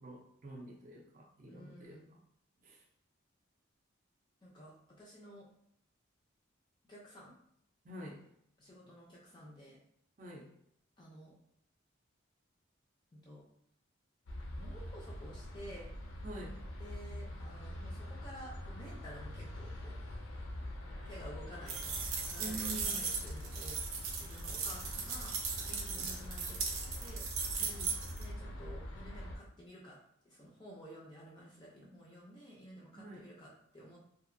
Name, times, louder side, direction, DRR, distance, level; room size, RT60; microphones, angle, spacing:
voice 1, 0.0-2.0 2.6-2.8 7.8-8.2 10.2-10.5 16.2-16.6 22.4-23.1 25.7-26.3 27.6-28.1 32.9-33.2, right 1 dB, 40° right, -1 dB, 0.5 m, -47 dB
voice 2, 1.5-2.2 4.4-5.5 6.9-7.3 8.6-9.8 11.0-11.3 13.1-13.4 14.6-15.9 16.8-20.0 21.1-23.8 24.2-27.3 28.2-30.0 30.2-34.0, equal, 20° left, -3 dB, 0.4 m, -52 dB
sound 1, 14.3-29.4, left 1 dB, 80° left, 0.5 m, -44 dB
sound 2, 21.7-28.2, right 5 dB, 90° right, 0.6 m, -38 dB
2.8 x 2.5 x 2.5 m, 0.73 s
head